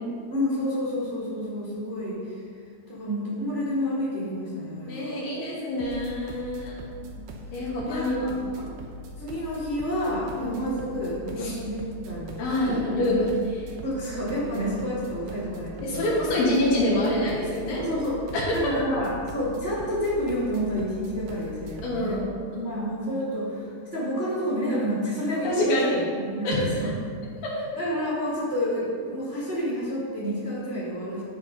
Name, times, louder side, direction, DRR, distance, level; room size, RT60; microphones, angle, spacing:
voice 1, 0.3-2.4 2.9-5.2 7.1-7.6 7.9-8.2 9.2-12.8 13.8-16.3 17.8-22.2 22.6-26.9 27.7-31.2, equal, 30° right, -8 dB, 1.5 m, -29 dB
voice 2, 4.9-6.8 7.5-8.6 10.3-10.6 11.4-11.5 12.4-13.7 15.8-17.8 18.3-18.6 21.8-22.9 25.4-26.0 26.4-26.6 27.4-27.5, left 1 dB, 75° left, -7 dB, 3.2 m, -26 dB
sound 1, 5.8-22.1, equal, 75° right, 2.1 m, -41 dB
12.0 x 4.5 x 5.2 m, 2.2 s
omnidirectional pair, 4.5 m